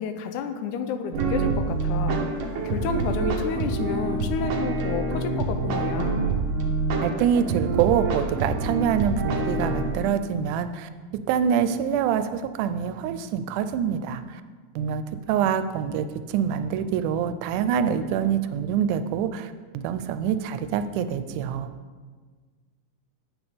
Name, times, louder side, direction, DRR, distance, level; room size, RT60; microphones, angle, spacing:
voice 1, 0.0-2.2 2.6-6.2, left 6 dB, 85° left, 8 dB, 2.1 m, -30 dB
sound 1, 1.1-9.9, right 3 dB, 65° right, 1.2 m, -26 dB
voice 2, 7.0-10.9 11.3-14.4 14.8-21.7, right 8 dB, 90° right, 11 dB, 2.1 m, -25 dB
8.7 x 6.2 x 5.0 m, 1.5 s
omnidirectional pair, 3.5 m